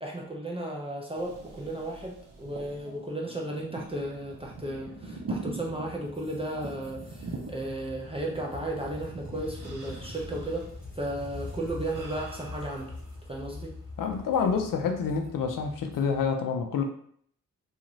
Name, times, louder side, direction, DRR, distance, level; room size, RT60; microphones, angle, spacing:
voice 1, 0.0-10.7 11.0-12.9 13.3-13.7, right 1 dB, 15° right, -2 dB, 0.4 m, -34 dB
sound 1, 1.1-13.6 14.0-14.8, right 3 dB, 65° right, 0.7 m, -44 dB
sound 2, 4.0-16.3, left 2 dB, 25° left, 0.8 m, -44 dB
voice 2, 14.0-16.8, left 6 dB, 70° left, 5 dB, 0.5 m, -27 dB
2.5 x 2.4 x 3.0 m, 0.62 s
wide cardioid pair, 130°, 34 cm